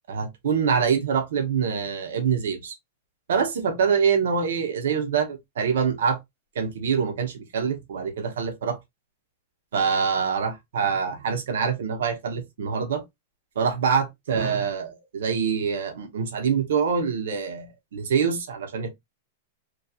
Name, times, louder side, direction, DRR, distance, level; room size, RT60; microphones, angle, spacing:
voice 1, 0.1-2.7 3.3-6.2 6.5-8.8 9.7-13.0 13.6-18.9, right 6 dB, 85° right, 0.7 m, -25 dB
2.8 x 2.2 x 2.3 m
supercardioid pair, 160°, 0 cm